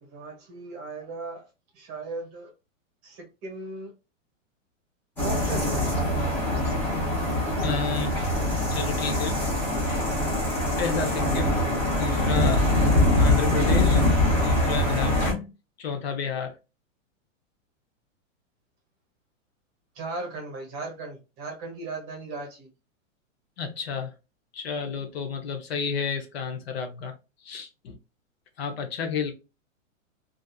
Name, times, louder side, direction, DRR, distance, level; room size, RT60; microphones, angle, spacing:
voice 1, 0.0-1.5 1.7-2.5 3.0-3.9 5.2-6.1 19.9-22.7, right 3 dB, 25° right, 0.9 m, -37 dB
sound 1, 5.2-15.3, left 1 dB, 5° left, 0.6 m, -23 dB
voice 2, 7.6-8.1 8.7-9.4 10.8-11.6 11.9-12.7 13.2-14.0 14.4-15.4 15.8-16.6 23.6-24.1 24.5-27.1 27.4-28.0 28.6-29.3, left 6 dB, 50° left, 0.6 m, -31 dB
2.7 x 2.4 x 2.2 m
hypercardioid pair, 160°, 40 cm